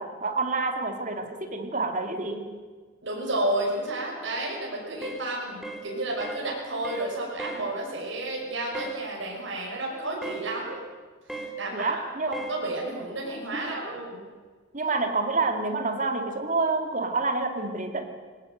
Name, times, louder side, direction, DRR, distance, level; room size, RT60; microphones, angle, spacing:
voice 1, 0.0-2.6 11.7-12.4 13.5-14.0 14.7-18.0, right 3 dB, 40° right, 5 dB, 2.4 m, -28 dB
voice 2, 3.0-10.8 11.3-12.0 12.3-14.2, right 1 dB, 70° right, -2 dB, 6.3 m, -31 dB
sound 1, 5.0-5.3 5.6-5.9 6.2-6.4 6.8-7.1 7.4-7.6 8.7-9.0 10.2-10.5 11.3-11.5 12.3-12.6, right 2 dB, ahead, 2.3 m, -36 dB
19.5 x 19.0 x 7.9 m, 1.4 s
head